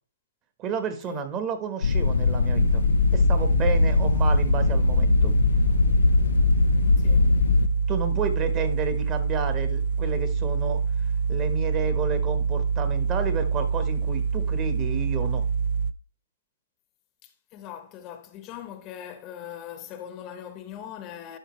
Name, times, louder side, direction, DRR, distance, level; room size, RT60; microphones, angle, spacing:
voice 1, 0.6-2.8 3.1-5.3 7.9-10.8 11.3-15.4, right 5 dB, 25° right, 1.1 m, -31 dB
sound 1, 1.8-7.7, left 5 dB, 80° left, 0.7 m, -21 dB
sound 2, 2.5-15.9, right 5 dB, 50° right, 0.4 m, -26 dB
voice 2, 7.0-7.3 17.2-21.4, left 10 dB, 25° left, 0.8 m, -41 dB
11.5 x 5.3 x 3.1 m
hypercardioid pair, 150°, 0 cm